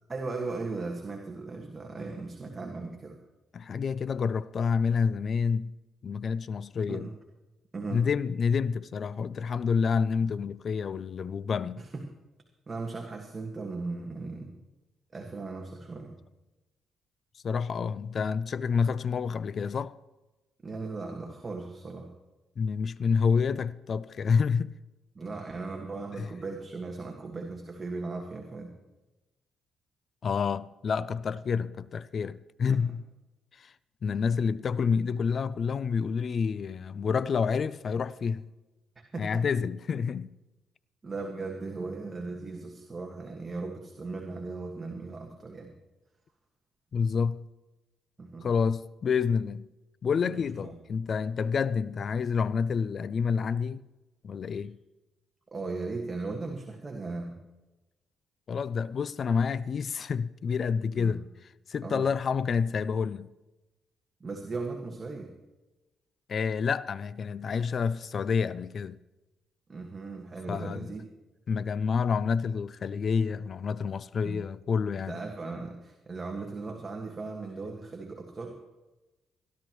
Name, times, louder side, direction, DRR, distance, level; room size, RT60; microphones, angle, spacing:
voice 1, 0.1-3.2 6.9-7.1 7.7-8.0 11.8-12.0 12.7-14.5 15.1-16.1 20.6-22.1 25.1-28.7 32.7-32.8 39.1-39.5 41.0-45.7 48.2-48.5 50.2-50.8 54.5-54.6 55.5-57.4 61.0-61.2 61.8-62.0 64.2-65.3 69.7-71.0 74.2-74.4 75.1-78.6, right 3 dB, 30° right, 1.7 m, -37 dB
voice 2, 3.5-5.7 6.0-7.1 7.9-11.8 17.4-19.9 22.6-24.7 26.2-26.3 30.2-33.0 33.6-33.7 34.0-38.5 39.2-40.3 46.9-47.4 48.4-49.7 50.0-53.8 54.2-54.8 58.5-61.2 61.7-63.3 66.3-69.0 70.5-70.9 71.5-75.2, left 6 dB, 50° left, 0.4 m, -28 dB
20.5 x 12.5 x 3.1 m
cardioid pair, 90°, 0 cm